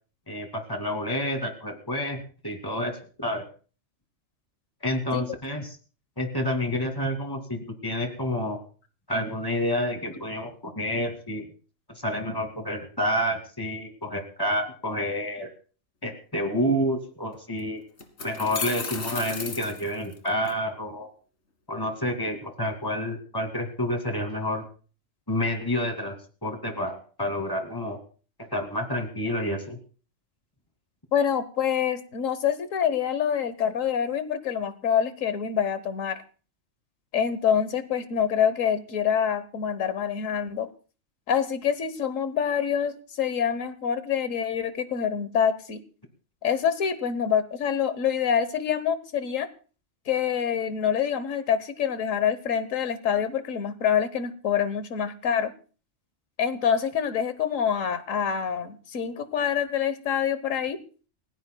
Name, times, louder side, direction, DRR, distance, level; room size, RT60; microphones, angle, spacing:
voice 1, 0.3-3.4 4.8-5.8 6.2-8.6 9.1-11.4 11.9-15.5 16.0-17.8 18.2-21.1 21.7-24.7 25.3-26.2 26.4-28.0 28.5-29.8, equal, 15° left, 4 dB, 2.4 m, -29 dB
sound 1, 17.3-17.4 18.0-20.5, left 4 dB, 65° left, 2.1 m, -34 dB
voice 2, 31.1-36.2 37.1-40.7 41.3-45.8 46.4-49.5 50.1-55.5 56.4-60.8, left 8 dB, 85° left, 12 dB, 1.5 m, -26 dB
29.0 x 16.5 x 2.3 m, 0.39 s
omnidirectional pair, 1.3 m